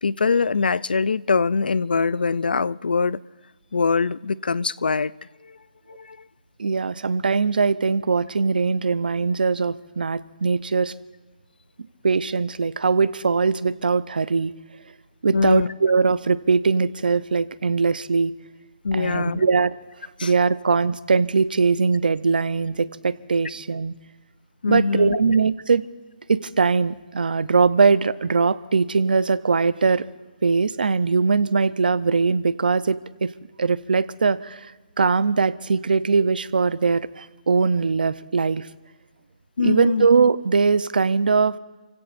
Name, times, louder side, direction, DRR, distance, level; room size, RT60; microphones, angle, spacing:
voice 1, 0.0-3.2 3.7-5.2 5.4-5.6 5.9-6.3 15.3-15.7 18.8-19.5 20.2-20.3 24.6-25.3 39.6-40.1, left 4 dB, 90° left, 0.5 m, -23 dB
voice 2, 6.6-10.9 12.0-14.5 15.2-18.3 18.9-19.7 20.2-23.9 24.7-25.8 26.3-30.0 30.4-33.3 33.6-34.7 35.0-38.7 39.6-41.6, right 4 dB, 80° right, 0.7 m, -21 dB
30.0 x 16.5 x 2.6 m
hypercardioid pair, 165°, 5 cm